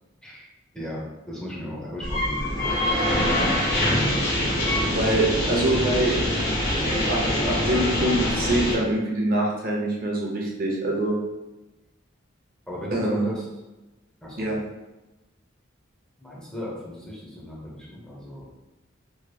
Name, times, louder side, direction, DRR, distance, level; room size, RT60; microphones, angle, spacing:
voice 1, 1.3-4.1 12.7-13.5 14.2-14.5 16.2-18.5, left 1 dB, 5° left, -6 dB, 0.7 m, -36 dB
sound 1, 2.0-8.7, left 1 dB, 55° left, 1.3 m, -24 dB
voice 2, 4.9-7.2 7.5-11.1 12.9-13.3 14.4-14.6, right 1 dB, 45° right, -2 dB, 0.6 m, -25 dB
3.1 x 2.9 x 2.3 m, 1.0 s
head